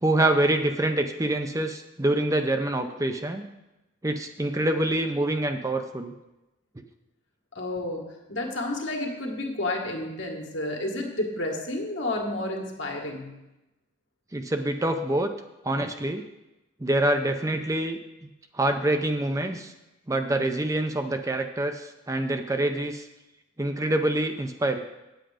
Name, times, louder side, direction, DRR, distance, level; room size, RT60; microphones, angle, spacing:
voice 1, 0.0-3.4 4.0-6.1 14.3-15.3 15.6-16.2 16.8-18.3 18.5-19.7 20.1-23.1 23.6-24.8, right 1 dB, 15° right, 6 dB, 0.5 m, -26 dB
voice 2, 7.6-13.3, left 1 dB, 70° left, 1 dB, 1.7 m, -31 dB
8.9 x 7.9 x 5.0 m, 0.96 s
head